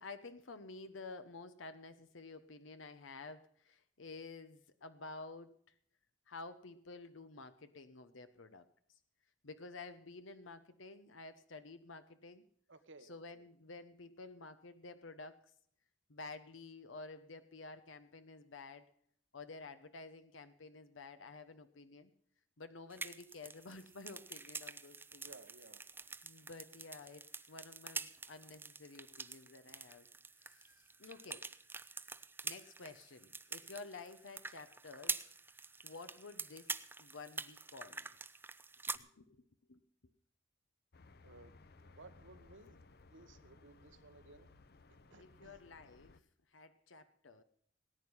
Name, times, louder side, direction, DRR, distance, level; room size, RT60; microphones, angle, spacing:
voice 1, 0.0-5.5 6.3-9.0 9.4-12.4 13.0-15.4 16.1-18.9 19.3-22.1 22.6-25.3 26.2-30.1 30.4-31.4 32.4-35.2 35.8-36.7 37.0-38.1 38.9-39.4 39.7-39.8 45.2-46.2 46.5-47.4, left 3 dB, 80° left, 10 dB, 0.9 m, -51 dB
voice 2, 12.7-13.4 25.2-25.8 41.2-44.5 45.1-45.6, right 2 dB, 80° right, 10 dB, 1.4 m, -59 dB
sound 1, 22.9-39.0, right 4 dB, 10° right, 0.6 m, -46 dB
sound 2, 40.9-46.2, left 3 dB, 55° left, 0.8 m, -61 dB
18.5 x 9.7 x 5.6 m, 0.66 s
head